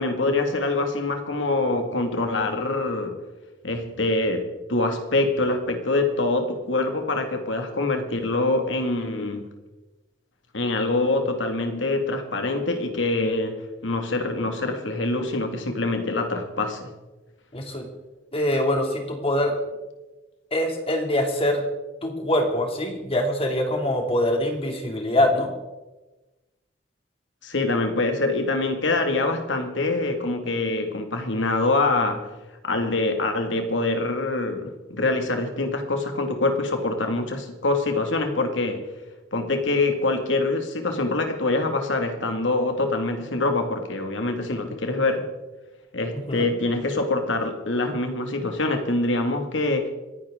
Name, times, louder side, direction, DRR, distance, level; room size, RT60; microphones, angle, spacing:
voice 1, 0.0-3.2 3.6-9.5 10.5-16.9 27.4-32.3 32.6-38.9 39.3-45.3 45.9-49.9, left 2 dB, 80° left, 5 dB, 2.1 m, -25 dB
voice 2, 17.5-17.8 18.3-19.5 20.5-21.6 22.0-25.5 46.1-46.5, left 1 dB, 30° left, 3 dB, 2.6 m, -24 dB
27.0 x 10.5 x 3.7 m, 1.1 s
head